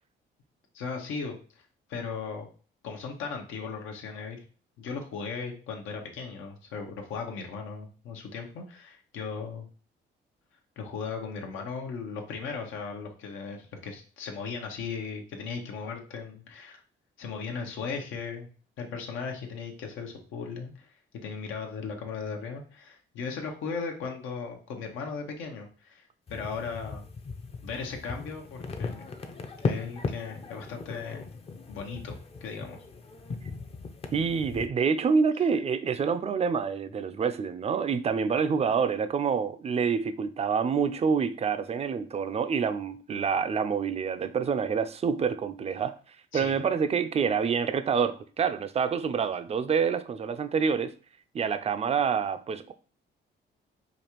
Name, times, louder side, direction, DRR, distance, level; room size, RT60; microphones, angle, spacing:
voice 1, 0.7-1.3 1.9-2.5 2.8-4.4 4.8-9.7 10.8-16.8 17.2-18.5 18.8-27.0 27.6-29.0 29.6-31.3 31.7-32.9 46.3-46.6, left 5 dB, 85° left, 0.8 m, -37 dB
sound 1, 26.3-34.7, left 4 dB, 30° left, 0.5 m, -37 dB
voice 2, 34.1-46.0 46.3-50.9 51.3-52.7, right 6 dB, 30° right, 0.4 m, -27 dB
5.0 x 2.4 x 2.9 m
cardioid pair, 90°, 20 cm